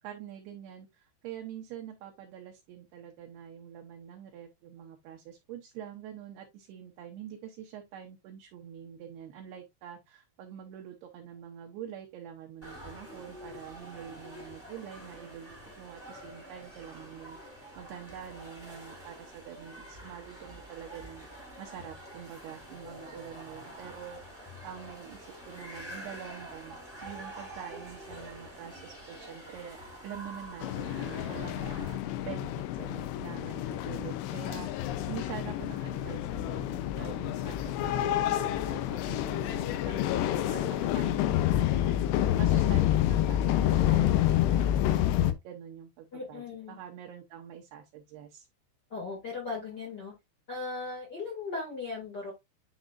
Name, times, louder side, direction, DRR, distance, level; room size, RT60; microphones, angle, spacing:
voice 1, 0.0-17.4 17.8-21.3 21.6-31.9 32.2-38.1 38.4-46.4 46.7-48.5, right 9 dB, 75° right, 2.5 m, -45 dB
sound 1, 12.6-32.0, equal, 5° left, 1.3 m, -47 dB
sound 2, 30.6-45.3, left 12 dB, 85° left, 2.5 m, -28 dB
voice 2, 46.1-46.8 48.9-50.1 50.5-52.3, left 3 dB, 45° left, 1.3 m, -37 dB
10.0 x 4.2 x 2.5 m
omnidirectional pair, 5.5 m